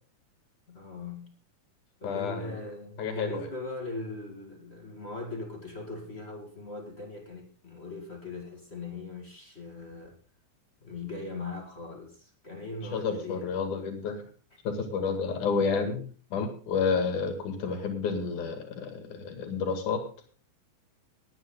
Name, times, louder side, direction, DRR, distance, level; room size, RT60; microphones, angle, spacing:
voice 1, 0.7-1.3 2.0-10.2 10.8-13.5, left 3 dB, 25° left, 2.1 m, -40 dB
voice 2, 2.0-2.5 3.0-3.5 12.9-14.2 14.7-16.0 16.3-20.0, left 5 dB, 85° left, 3.7 m, -30 dB
20.5 x 9.1 x 3.8 m
omnidirectional pair, 3.5 m